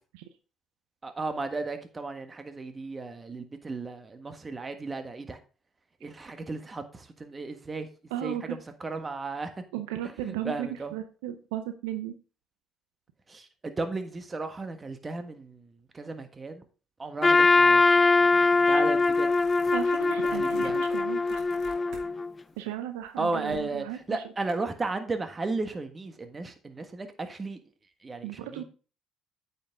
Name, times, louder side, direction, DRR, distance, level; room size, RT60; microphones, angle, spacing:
voice 1, 1.0-5.4 6.0-9.6 10.0-10.9 13.3-16.6 17.0-17.8 18.7-19.4 19.6-19.7 20.2-20.8 23.2-27.6 28.0-28.6, right 3 dB, 30° right, 1.5 m, -35 dB
voice 2, 8.1-8.6 9.7-12.1 18.6-18.8 19.7-21.4 22.6-24.2 28.2-28.6, right 12 dB, 80° right, 0.7 m, -35 dB
Trumpet, 17.2-22.3, left 3 dB, 25° left, 0.4 m, -22 dB
sound 1, 17.8-18.0 18.4-22.1 22.5-24.5, right 3 dB, 65° right, 2.7 m, -51 dB
8.8 x 5.7 x 3.7 m
hypercardioid pair, 60°, 0 cm